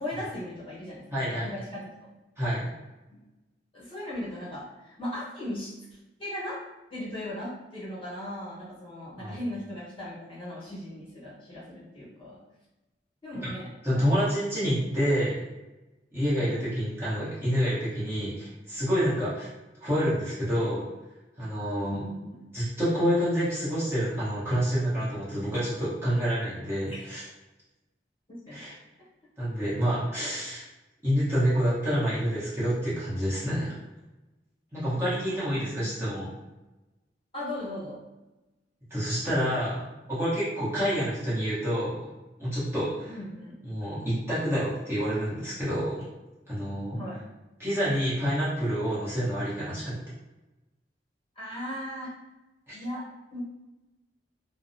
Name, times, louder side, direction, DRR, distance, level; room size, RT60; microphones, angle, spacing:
voice 1, 0.0-1.9 3.1-3.2 3.7-5.7 6.2-6.6 6.9-12.4 13.2-14.2 16.4-16.6 21.9-22.4 26.9-27.0 28.3-28.6 30.1-30.3 34.9-35.8 36.2-36.3 37.3-38.0 43.1-43.5 46.9-47.2 51.4-52.1 52.7-53.4, left 1 dB, 30° left, -9 dB, 1.0 m, -38 dB
voice 2, 1.1-1.5 2.4-2.7 9.2-9.3 13.8-15.4 16.1-19.5 19.8-20.9 21.4-22.0 22.5-27.2 28.5-28.7 29.4-30.6 31.0-33.7 34.7-36.3 38.9-39.8 40.1-42.1 42.4-43.1 43.6-46.0 46.5-47.0 47.6-50.0 52.7-52.8, equal, 15° right, -11 dB, 0.9 m, -28 dB
2.6 x 2.0 x 2.6 m, 1.0 s
head